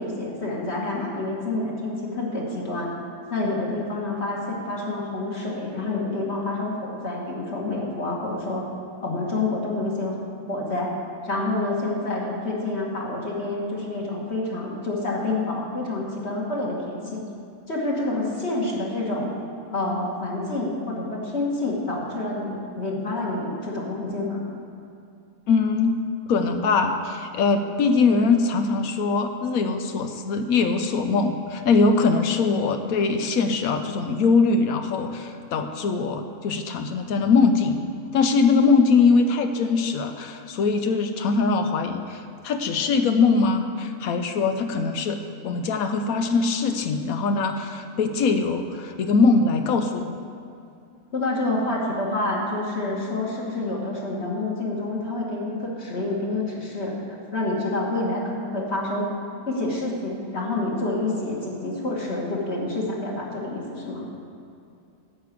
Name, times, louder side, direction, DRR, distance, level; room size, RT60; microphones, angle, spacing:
voice 1, 0.0-2.9 3.3-8.7 9.0-10.2 10.5-10.9 11.2-17.2 17.7-19.3 19.7-24.4 51.1-57.0 57.3-59.0 59.5-64.1, left 2 dB, 45° left, -4 dB, 1.9 m, -28 dB
voice 2, 25.5-26.0 26.3-37.8 38.1-45.2 45.4-50.1, left 4 dB, 75° left, 6 dB, 1.1 m, -22 dB
12.0 x 4.8 x 8.2 m, 2.6 s
omnidirectional pair, 1.6 m